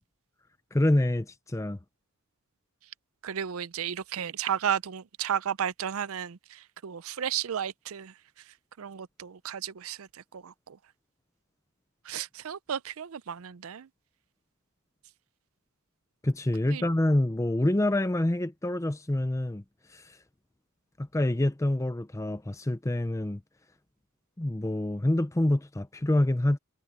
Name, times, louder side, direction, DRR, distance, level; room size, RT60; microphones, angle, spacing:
voice 1, 0.7-1.8 16.2-19.6 19.9-20.2 21.0-23.4 24.4-26.6, left 1 dB, 15° left, 0.5 m, -26 dB
voice 2, 3.2-6.4 6.8-8.1 8.8-10.1 10.3-10.5 12.1-13.9 16.7-16.8, right 8 dB, 65° right, 0.5 m, -33 dB
head